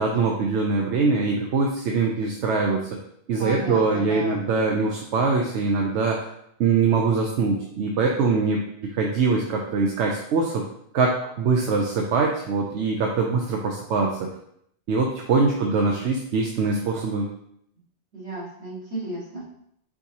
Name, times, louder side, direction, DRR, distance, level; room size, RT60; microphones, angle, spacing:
voice 1, 0.0-2.8 3.3-6.3 6.6-8.6 9.0-10.6 10.9-14.2 14.9-17.3, right 4 dB, 85° right, 0 dB, 0.9 m, -23 dB
voice 2, 3.4-4.4 18.1-19.4, right 1 dB, 65° right, -8 dB, 2.1 m, -34 dB
4.7 x 4.0 x 2.8 m, 0.72 s
omnidirectional pair, 1.2 m